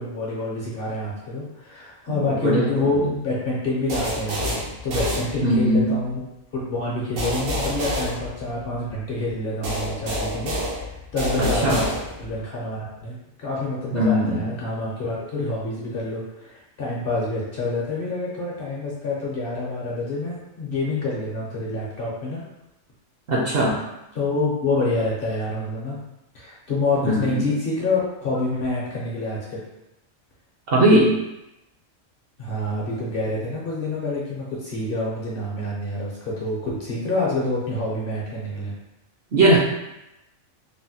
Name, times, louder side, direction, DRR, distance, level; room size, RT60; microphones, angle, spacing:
voice 1, 0.0-6.2 6.5-11.9 12.2-22.4 24.1-26.0 26.3-29.6 32.4-38.7, left 2 dB, 55° left, -5 dB, 0.7 m, -27 dB
voice 2, 2.2-2.8 5.4-5.9 11.4-11.8 13.9-14.5 23.3-23.7 27.0-27.4 30.7-31.1 39.3-39.6, right 1 dB, 60° right, -4 dB, 0.7 m, -19 dB
sound 1, 3.9-5.8 7.2-8.9 9.6-12.4, equal, 85° right, 1.1 m, -28 dB
3.3 x 2.1 x 2.7 m, 0.91 s
omnidirectional pair, 1.3 m